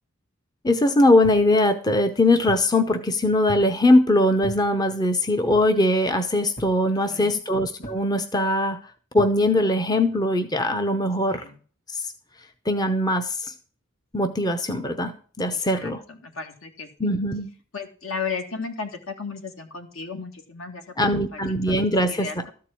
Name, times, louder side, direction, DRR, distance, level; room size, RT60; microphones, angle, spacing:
voice 1, 0.6-8.8 9.1-11.4 11.9-12.0 12.7-13.5 14.1-16.0 17.0-17.5 21.0-22.3, left 1 dB, 20° left, 7 dB, 0.7 m, -21 dB
sound 1, 1.2-1.5 2.1-2.7 3.5-3.8 4.4-4.7 5.5-5.8 6.6-6.8 7.8-8.1 9.2-9.4, equal, 45° left, 1.9 m, -38 dB
voice 2, 6.9-7.4 11.3-11.6 15.5-17.1 17.7-20.8 21.2-21.8 22.1-22.5, left 5 dB, 70° left, 5 dB, 1.9 m, -35 dB
13.5 x 4.7 x 8.4 m, 0.42 s
head